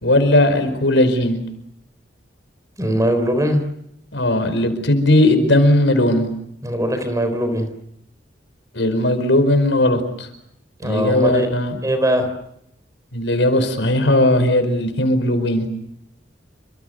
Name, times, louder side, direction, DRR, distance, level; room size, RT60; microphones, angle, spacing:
voice 1, 0.0-1.4 4.1-6.3 8.7-10.3 10.8-11.7 13.1-15.7, left 1 dB, 85° left, 9 dB, 5.1 m, -17 dB
voice 2, 2.8-3.6 6.6-7.7 10.8-11.5 11.8-12.3, equal, 20° right, 9 dB, 4.0 m, -20 dB
29.0 x 25.5 x 6.6 m, 0.75 s
head